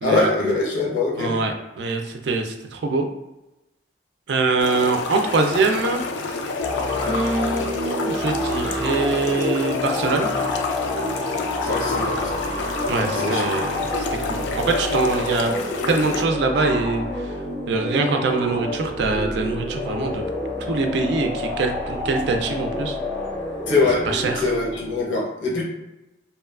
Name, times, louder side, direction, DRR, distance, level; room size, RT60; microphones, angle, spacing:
voice 1, 0.0-1.4 11.6-12.4 13.0-13.5 23.7-24.1 24.3-25.6, left 3 dB, 90° left, -3 dB, 0.8 m, -23 dB
voice 2, 1.2-3.1 4.3-6.0 7.1-10.3 12.9-15.6 15.9-17.3 17.7-20.2 20.7-23.0 24.1-24.5, right 3 dB, 65° right, 4 dB, 0.4 m, -23 dB
sound 1, 4.6-16.2, left 3 dB, 70° left, 0.3 m, -29 dB
sound 2, 6.6-25.0, left 2 dB, 10° left, 0.5 m, -28 dB
2.7 x 2.2 x 2.3 m, 0.99 s
head